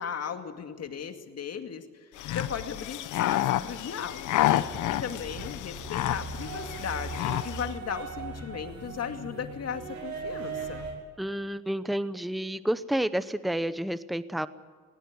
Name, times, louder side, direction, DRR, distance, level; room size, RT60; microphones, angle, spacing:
voice 1, 0.0-4.4 4.6-10.9, left 7 dB, 55° left, 6 dB, 2.4 m, -36 dB
Impala male-Cherchant femelle, 2.2-7.7, left 13 dB, 80° left, 1.0 m, -30 dB
sound 1, 4.4-10.9, right 4 dB, 65° right, 5.9 m, -39 dB
voice 2, 11.2-14.5, right 1 dB, ahead, 14 dB, 0.8 m, -30 dB
20.0 x 18.5 x 9.6 m, 1.5 s
cardioid pair, 90°, 30 cm